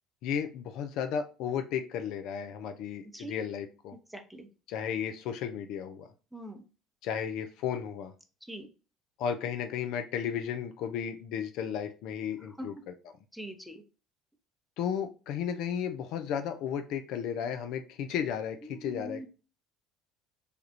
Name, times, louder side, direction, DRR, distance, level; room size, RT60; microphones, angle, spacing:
voice 1, 0.2-4.0 4.7-6.1 7.0-8.1 9.2-13.1 14.8-19.3, left 8 dB, 60° left, 7 dB, 0.3 m, -34 dB
voice 2, 6.3-6.6 8.5-8.7 12.6-12.7 13.4-13.8 18.7-19.3, equal, ahead, 4 dB, 0.7 m, -41 dB
3.3 x 2.3 x 2.7 m, 0.33 s
figure-of-eight pair, 60°, 0 cm